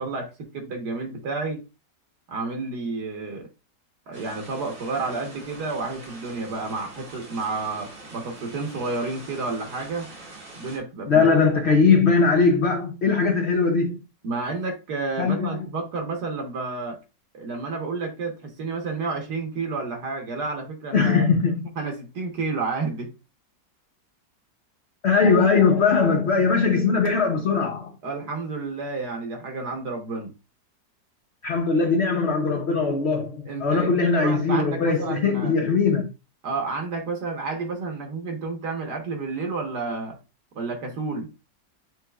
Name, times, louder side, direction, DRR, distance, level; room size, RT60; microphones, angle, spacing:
voice 1, 0.0-1.6 2.3-3.5 4.1-10.1 10.6-11.3 14.2-17.0 17.3-21.3 21.8-23.1 28.0-30.3 33.4-35.6 36.4-40.2 40.5-41.3, right 3 dB, 65° right, 1.6 m, -30 dB
sound 1, 4.1-10.8, right 2 dB, 85° right, 2.3 m, -44 dB
voice 2, 11.1-14.0 15.2-15.7 20.9-21.7 25.0-28.0 31.4-36.1, left 4 dB, 60° left, 0.7 m, -20 dB
7.6 x 2.9 x 2.2 m
omnidirectional pair, 1.9 m